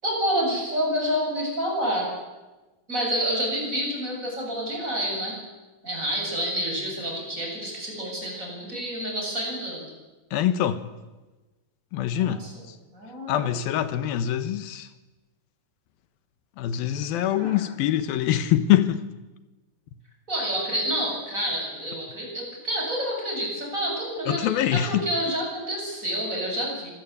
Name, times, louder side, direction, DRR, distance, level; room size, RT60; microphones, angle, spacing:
voice 1, 0.0-2.1 2.9-5.4 5.8-9.9 12.1-12.5 12.9-13.5 17.3-17.7 20.3-26.9, equal, 20° right, 8.2 m, -28 dB
voice 2, 10.3-10.9 11.9-12.5 13.3-14.9 16.6-19.0 24.3-25.1, left 11 dB, 85° left, 3.1 m, -24 dB
25.0 x 18.5 x 8.6 m
omnidirectional pair, 4.1 m